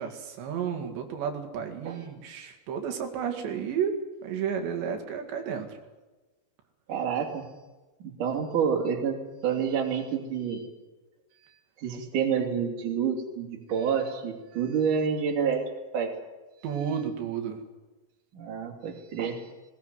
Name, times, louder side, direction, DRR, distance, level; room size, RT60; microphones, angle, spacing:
voice 1, 0.0-5.8 16.6-17.6, right 7 dB, 85° right, 3 dB, 4.5 m, -32 dB
voice 2, 6.9-7.5 8.0-10.7 11.8-16.2 18.3-19.5, right 7 dB, 50° right, 3 dB, 4.2 m, -28 dB
20.5 x 19.0 x 9.5 m, 1.2 s
omnidirectional pair, 5.0 m